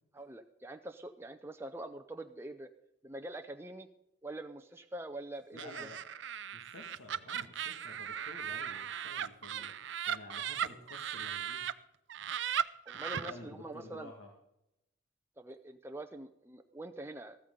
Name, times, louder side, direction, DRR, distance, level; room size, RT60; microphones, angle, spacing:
voice 1, 0.2-2.7 3.0-3.9 4.2-5.7 12.9-14.1 15.4-17.4, right 1 dB, 10° right, 6 dB, 0.5 m, -44 dB
voice 2, 5.5-6.1 6.5-9.8 10.1-11.7 13.1-14.3, left 2 dB, 85° left, 1 dB, 1.8 m, -51 dB
Laughter, 5.6-11.7 12.1-13.3, right 8 dB, 65° right, 0.5 m, -37 dB
14.5 x 13.5 x 3.8 m, 0.84 s
head